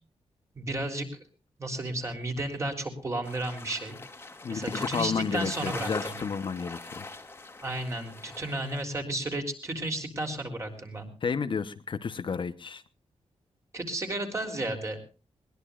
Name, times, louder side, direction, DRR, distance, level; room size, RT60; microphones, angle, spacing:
voice 1, 0.5-1.2 1.6-4.0 4.5-6.3 7.6-11.1 13.7-15.0, right 1 dB, 25° right, 3 dB, 3.7 m, -33 dB
sound 1, 3.2-8.8, left 3 dB, 20° left, 1.9 m, -41 dB
voice 2, 4.4-7.1 11.2-12.8, left 5 dB, 45° left, 10 dB, 1.0 m, -31 dB
21.5 x 20.0 x 2.5 m, 0.33 s
wide cardioid pair, 165°, 11 cm